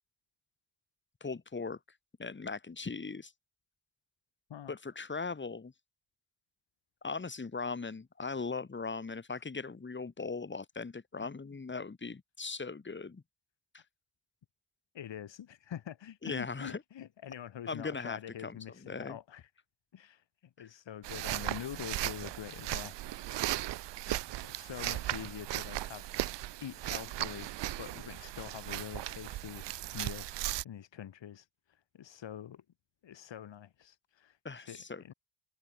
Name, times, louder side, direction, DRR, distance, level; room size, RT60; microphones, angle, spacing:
voice 1, 1.2-1.8 2.2-3.3 4.7-5.7 7.0-13.2 16.2-16.8 17.7-18.6 18.8-19.2 34.4-35.1, left 4 dB, 25° left, 2.0 m, -39 dB
voice 2, 14.9-19.5 19.9-23.0 23.3-23.6 24.5-26.2 26.6-27.5 27.8-29.7 29.9-32.6 33.0-35.1, left 10 dB, 70° left, 2.0 m, -45 dB
sound 1, 21.0-30.6, right 15 dB, 65° right, 0.6 m, -37 dB
wide cardioid pair, 120°, 46 cm